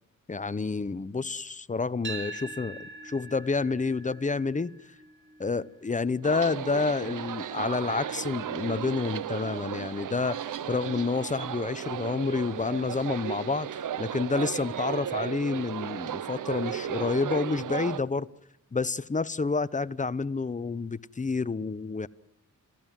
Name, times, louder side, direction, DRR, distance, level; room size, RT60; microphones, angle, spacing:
voice 1, 0.3-4.7 5.4-10.4 10.7-18.3 18.7-22.1, left 4 dB, 25° left, 0.8 m, -29 dB
sound 1, 2.0-10.2, right 2 dB, 35° right, 2.4 m, -46 dB
sound 2, 6.2-18.0, right 10 dB, 70° right, 0.8 m, -35 dB
27.0 x 16.5 x 7.6 m
cardioid pair, 70°, 32 cm